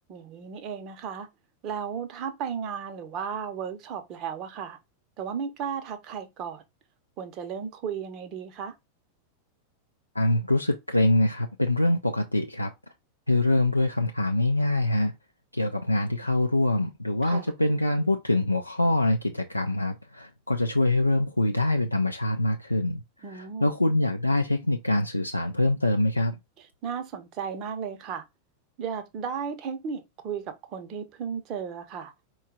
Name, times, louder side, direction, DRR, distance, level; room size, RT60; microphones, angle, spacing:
voice 1, 0.1-1.3 1.6-4.8 5.2-6.6 7.2-8.7 17.2-17.5 23.2-23.7 26.6-28.2 28.8-32.1, right 7 dB, 35° right, 0.8 m, -35 dB
voice 2, 10.2-12.7 13.3-15.1 15.5-23.0 23.3-26.4, left 1 dB, 85° left, 0.4 m, -24 dB
4.4 x 2.3 x 3.7 m
figure-of-eight pair, 90°, 0 cm